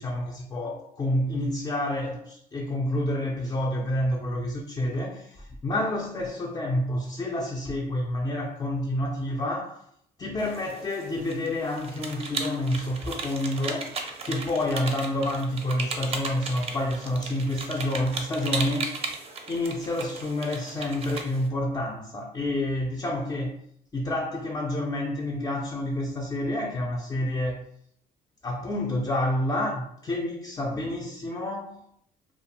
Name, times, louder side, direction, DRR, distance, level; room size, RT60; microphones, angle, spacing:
voice 1, 0.0-9.8 10.2-19.1 19.5-23.5 23.9-27.6 28.4-31.8, left 1 dB, 20° left, -2 dB, 0.3 m, -29 dB
sound 1, 10.4-21.5, right 4 dB, 35° right, 0.5 m, -36 dB
2.4 x 2.2 x 2.8 m, 0.68 s
cardioid pair, 110°, 17 cm